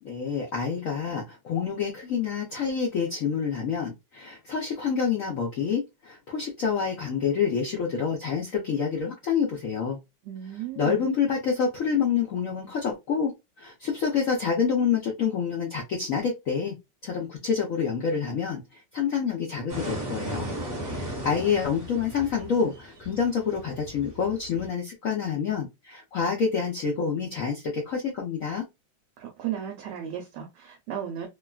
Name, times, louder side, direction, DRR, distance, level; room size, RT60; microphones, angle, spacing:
voice 1, 0.0-10.0 10.8-13.3 13.6-16.7 17.0-20.5 20.8-28.6, left 6 dB, 70° left, 0.8 m, -27 dB
voice 2, 10.2-11.0 29.2-31.3, right 10 dB, 70° right, 1.2 m, -35 dB
sound 1, 19.7-24.7, right 1 dB, 25° right, 1.5 m, -36 dB
3.4 x 2.3 x 2.2 m
omnidirectional pair, 2.1 m